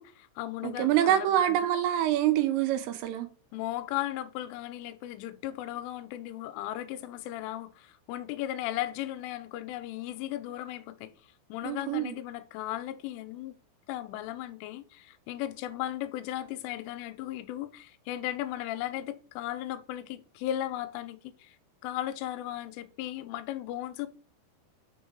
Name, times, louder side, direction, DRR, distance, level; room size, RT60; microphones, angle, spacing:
voice 1, 0.0-1.7 3.5-13.6 13.9-21.6 21.8-24.1, left 13 dB, 85° left, 3.0 m, -36 dB
voice 2, 0.6-3.3 11.6-12.1, right 12 dB, 90° right, 3.4 m, -26 dB
6.8 x 4.7 x 6.3 m
omnidirectional pair, 5.9 m